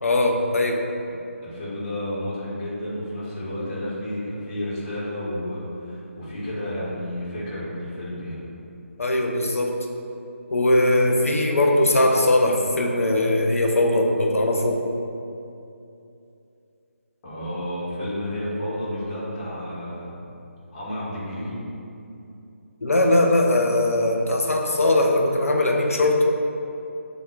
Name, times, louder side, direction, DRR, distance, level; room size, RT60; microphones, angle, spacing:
voice 1, 0.0-0.8 9.0-9.8 10.5-14.8 22.8-26.2, left 1 dB, 75° left, 1 dB, 0.5 m, -20 dB
voice 2, 1.4-8.4 17.2-20.3 20.7-21.6, left 1 dB, 25° left, -9 dB, 1.1 m, -31 dB
6.9 x 2.3 x 2.3 m, 2.7 s
figure-of-eight pair, 150°, 8 cm